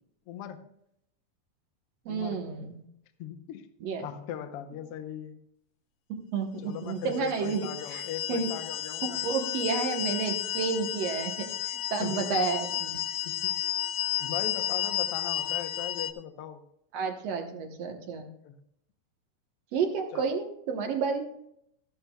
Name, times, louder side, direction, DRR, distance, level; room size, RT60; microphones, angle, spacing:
voice 1, 0.3-0.7 2.1-2.4 3.2-3.7 4.0-5.4 6.6-9.2 12.0-12.4 13.2-13.5 14.2-16.6 18.4-18.5 20.1-20.2, left 10 dB, 70° left, 6 dB, 1.4 m, -39 dB
voice 2, 2.1-2.8 3.8-4.1 6.1-8.0 8.3-8.5 9.2-13.0 16.9-18.3 19.7-21.3, right 5 dB, 60° right, 4 dB, 2.0 m, -31 dB
sound 1, 7.1-16.1, left 13 dB, 90° left, 1.5 m, -32 dB
13.5 x 11.5 x 2.3 m, 0.74 s
omnidirectional pair, 3.7 m